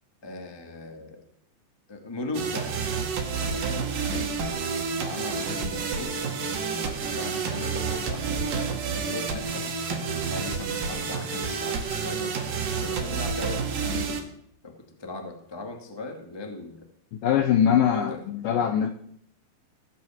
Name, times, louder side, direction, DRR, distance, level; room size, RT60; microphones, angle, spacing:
voice 1, 0.2-1.2 1.9-2.8 3.3-4.5 4.9-6.2 6.7-8.5 9.0-9.8 10.3-12.3 12.8-14.2 14.6-14.7 15.0-16.8 17.9-18.2, left 2 dB, 20° left, 3 dB, 0.6 m, -38 dB
sound 1, 2.3-14.2, right 5 dB, 55° right, 3.2 m, -29 dB
voice 2, 17.2-18.9, left 9 dB, 80° left, 7 dB, 2.0 m, -22 dB
16.5 x 9.2 x 7.3 m, 0.69 s
omnidirectional pair, 4.9 m